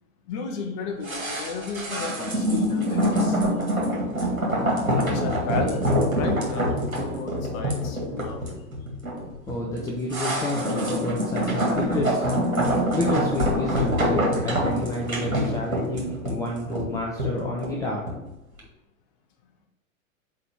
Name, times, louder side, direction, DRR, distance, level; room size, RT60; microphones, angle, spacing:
voice 1, 0.3-3.6 4.9-8.4, left 4 dB, 35° left, 3 dB, 1.1 m, -33 dB
sound 1, 1.0-18.3 18.6-18.7, equal, 80° right, 2.1 m, -25 dB
voice 2, 9.5-12.6 12.9-18.1, left 1 dB, 10° left, -3 dB, 0.7 m, -29 dB
4.9 x 4.8 x 6.1 m, 0.92 s
figure-of-eight pair, 100°, 41 cm